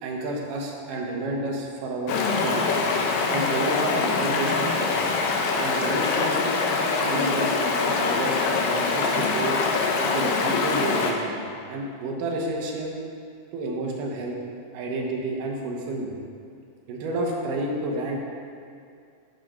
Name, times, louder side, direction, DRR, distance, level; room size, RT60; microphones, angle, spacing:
voice 1, 0.0-2.8 3.3-5.1 5.6-6.5 7.0-9.6 10.0-12.9 13.5-16.2 16.9-18.2, right 2 dB, 75° right, -1 dB, 2.6 m, -30 dB
Stream, 2.1-11.1, left 4 dB, 90° left, 2.5 m, -24 dB
12.0 x 5.1 x 4.7 m, 2.3 s
omnidirectional pair, 3.9 m